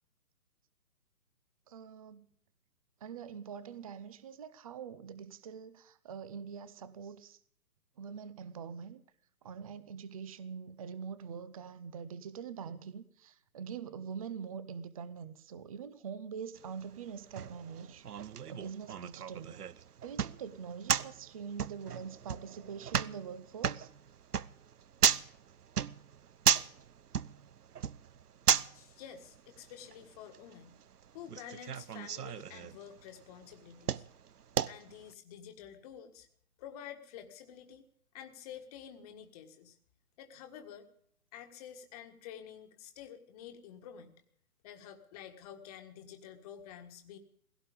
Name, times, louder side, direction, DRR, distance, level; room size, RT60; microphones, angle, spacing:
voice 1, 1.7-2.3 3.0-7.4 8.0-9.0 9.4-18.1 18.5-19.6 20.0-23.9, right 6 dB, 25° right, 0.6 m, -44 dB
sound 1, 16.5-35.1, right 8 dB, 90° right, 0.8 m, -35 dB
voice 2, 28.7-30.8 31.1-34.0 34.6-36.3 36.6-37.9 38.1-39.8 40.2-40.9 41.3-44.1 44.6-47.2, left 9 dB, 25° left, 1.6 m, -49 dB
17.0 x 16.5 x 5.1 m
hypercardioid pair, 150°, 45 cm